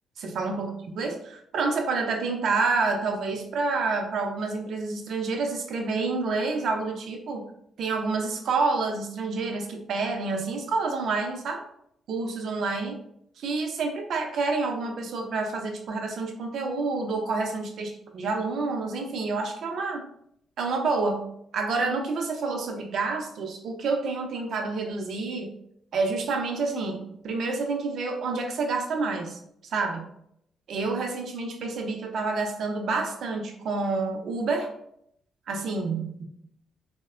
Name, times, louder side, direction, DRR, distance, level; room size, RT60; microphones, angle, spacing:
voice 1, 0.2-7.4 7.8-11.6 12.1-13.0 13.4-20.0 20.6-21.3 21.5-25.5 25.9-30.1 30.7-34.7 35.5-36.2, right 3 dB, 70° right, 3 dB, 0.5 m, -28 dB
3.4 x 2.1 x 2.4 m, 0.73 s
cardioid pair, 90°, 0 cm